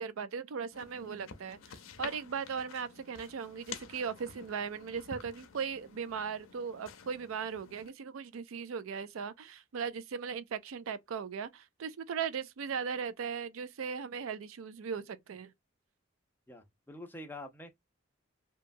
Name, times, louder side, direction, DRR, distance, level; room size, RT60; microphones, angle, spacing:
voice 1, 0.0-15.5, right 6 dB, 90° right, 0.4 m, -38 dB
sound 1, 0.7-7.9, left 6 dB, 90° left, 0.5 m, -50 dB
voice 2, 16.5-17.7, left 1 dB, 10° left, 0.6 m, -46 dB
2.9 x 2.3 x 2.5 m
head